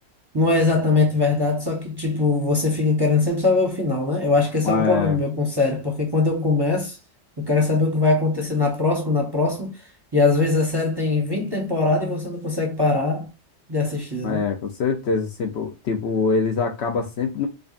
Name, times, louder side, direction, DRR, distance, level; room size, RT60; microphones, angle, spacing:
voice 1, 0.3-7.0 7.4-9.7 10.1-13.3 13.7-14.4, left 3 dB, 20° right, 0.7 m, -21 dB
voice 2, 4.6-5.2 14.2-17.5, left 5 dB, 60° left, 0.8 m, -24 dB
5.0 x 2.4 x 2.4 m
omnidirectional pair, 1.4 m